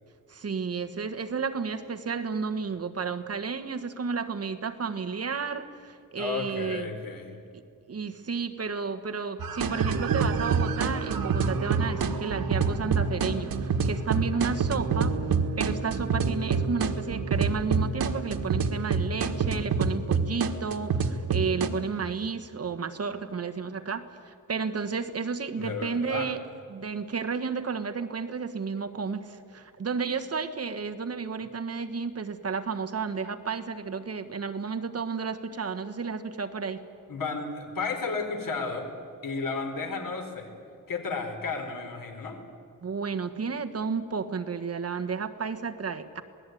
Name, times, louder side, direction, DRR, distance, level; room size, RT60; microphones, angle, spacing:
voice 1, 0.3-6.9 7.9-15.2 15.6-26.4 26.7-36.8 42.8-46.2, right 5 dB, 45° right, 7 dB, 1.4 m, -32 dB
voice 2, 6.2-7.4 25.6-26.3 37.1-38.9 39.2-40.5 40.9-42.4, left 4 dB, 70° left, 4 dB, 4.2 m, -33 dB
sound 1, 9.4-21.7, right 5 dB, 90° right, 1.6 m, -27 dB
27.0 x 19.0 x 9.3 m, 2.4 s
wide cardioid pair, 150°, 34 cm